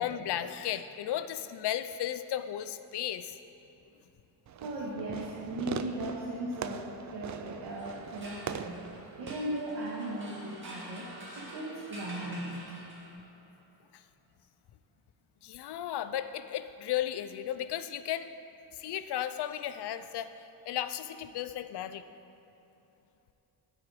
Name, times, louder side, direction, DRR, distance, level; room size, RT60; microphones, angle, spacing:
voice 1, 0.0-3.3 15.4-18.3 18.7-20.3 20.7-22.0, left 11 dB, 65° left, 12 dB, 0.6 m, -34 dB
Fireworks, 4.5-9.6, right 7 dB, 45° right, 0.4 m, -41 dB
voice 2, 4.6-8.9 9.2-11.1 11.3-12.7, right 1 dB, 75° right, -5 dB, 1.8 m, -37 dB
sound 1, 7.7-13.4, right 1 dB, 25° right, 2.3 m, -48 dB
13.0 x 8.5 x 4.9 m, 3.0 s
wide cardioid pair, 180°, 43 cm